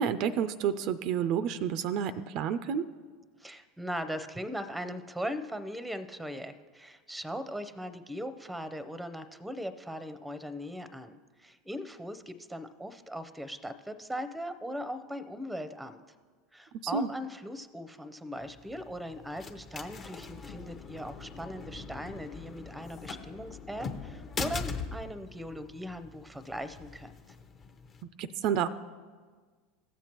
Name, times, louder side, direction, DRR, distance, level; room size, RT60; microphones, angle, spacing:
voice 1, 0.0-2.8 16.9-17.1 28.2-28.7, right 8 dB, 55° right, 13 dB, 0.3 m, -29 dB
voice 2, 3.4-16.0 16.5-27.4, equal, 5° right, 12 dB, 0.6 m, -39 dB
sound 1, 18.4-28.0, left 4 dB, 35° left, 0.8 m, -42 dB
15.5 x 7.2 x 3.0 m, 1.5 s
hypercardioid pair, 85°, 0 cm